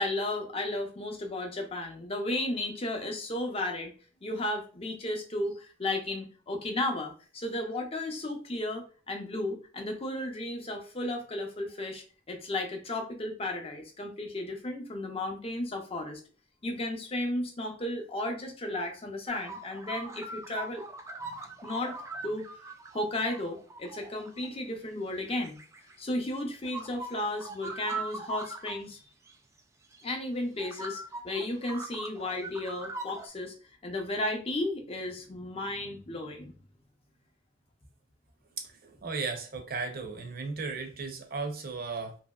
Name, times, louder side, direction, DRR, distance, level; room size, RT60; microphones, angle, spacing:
voice 1, 0.0-3.9 4.2-16.2 16.6-20.8 21.6-22.0 22.2-22.4 22.9-25.6 26.0-29.0 30.0-33.5 33.8-36.5, left 1 dB, 30° left, 0.6 m, -34 dB
sound 1, 19.3-24.5 25.2-26.2 26.6-28.8 29.3-29.4 29.9-30.0 30.6-33.3, right 3 dB, 15° right, 0.3 m, -41 dB
voice 2, 38.6-42.2, right 4 dB, 50° right, 0.6 m, -36 dB
2.9 x 2.7 x 2.3 m
head